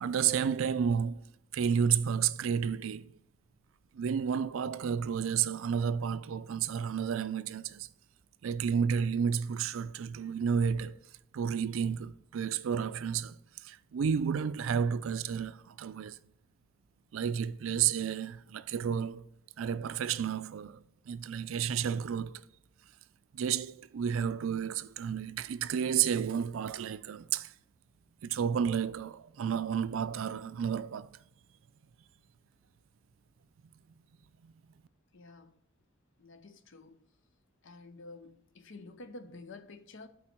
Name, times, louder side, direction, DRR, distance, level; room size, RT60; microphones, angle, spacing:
voice 1, 0.0-1.2 1.5-3.1 4.0-7.9 8.4-11.0 11.3-13.4 13.6-16.2 17.1-19.2 19.6-20.8 21.1-22.4 23.3-27.5 28.2-31.1, right 7 dB, 75° right, 0.4 m, -31 dB
voice 2, 35.1-35.6 36.2-37.0 37.6-40.1, left 2 dB, 65° left, 0.7 m, -49 dB
8.5 x 4.4 x 4.4 m
head